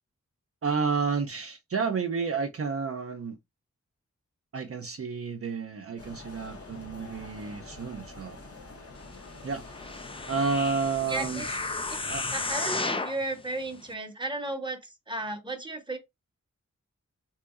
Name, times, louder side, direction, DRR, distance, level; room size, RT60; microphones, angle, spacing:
voice 1, 0.6-3.4 4.5-8.4 9.4-9.6 10.3-11.6 12.1-12.2, right 5 dB, 50° right, 0.5 m, -30 dB
sound 1, 6.0-12.6, left 3 dB, 50° left, 1.0 m, -46 dB
sound 2, 9.7-13.2 13.8-13.9, left 3 dB, 20° left, 0.3 m, -33 dB
voice 2, 11.1-11.5 11.9-12.0 12.3-16.0, right 2 dB, 15° right, 0.8 m, -34 dB
3.6 x 2.7 x 2.4 m
wide cardioid pair, 80°, 29 cm